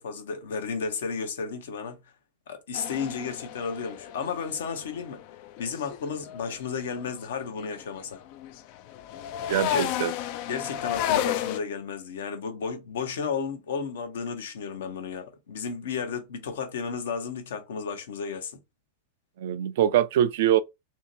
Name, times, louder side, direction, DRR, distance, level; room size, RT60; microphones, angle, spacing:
voice 1, 0.0-2.0 2.5-5.2 5.6-8.2 9.7-9.9 10.5-18.5, left 5 dB, 60° left, 0.7 m, -33 dB
sound 1, 2.7-7.2 7.6-11.6, left 12 dB, 45° left, 0.3 m, -33 dB
voice 2, 9.5-10.1 19.4-20.6, right 11 dB, 55° right, 0.3 m, -23 dB
2.8 x 2.8 x 2.6 m
figure-of-eight pair, 90°, 0 cm